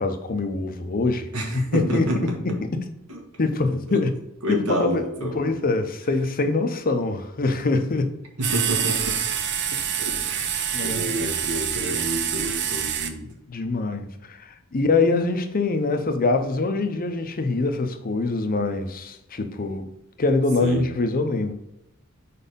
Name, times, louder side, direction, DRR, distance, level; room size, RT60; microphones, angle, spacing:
voice 1, 0.0-2.8 3.4-4.2 4.5-8.2 10.7-11.1 13.5-19.9 20.2-21.5, left 3 dB, 40° left, 0.7 m, -24 dB
voice 2, 1.3-2.2 3.1-3.2 4.4-5.5 8.4-9.1 10.0-13.2 20.6-20.9, right 1 dB, 90° right, 1.6 m, -29 dB
sound 1, 8.4-13.1, right 8 dB, 55° right, 0.6 m, -26 dB
4.8 x 4.2 x 5.2 m
head